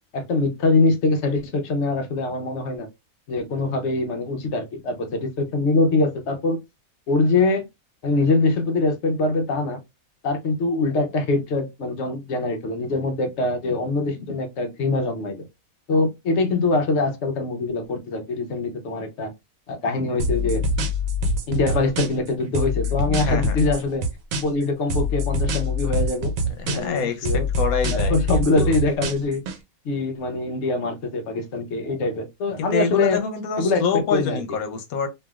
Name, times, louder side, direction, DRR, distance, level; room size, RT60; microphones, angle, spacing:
voice 1, 0.1-2.9 3.3-6.6 7.1-7.6 8.0-9.8 10.2-15.5 15.9-19.3 19.7-20.6 21.5-24.0 24.4-26.3 26.7-27.5 27.9-29.4 29.8-33.2 33.6-33.8 34.1-34.4, left 3 dB, 60° left, 0.9 m, -23 dB
sound 1, 20.2-22.3 22.5-24.6 24.9-27.0 27.2-29.6, left 1 dB, 75° right, 1.0 m, -24 dB
voice 2, 23.2-23.6 26.6-28.7 32.6-35.1, left 6 dB, 80° left, 1.1 m, -26 dB
3.2 x 2.6 x 2.3 m
omnidirectional pair, 1.5 m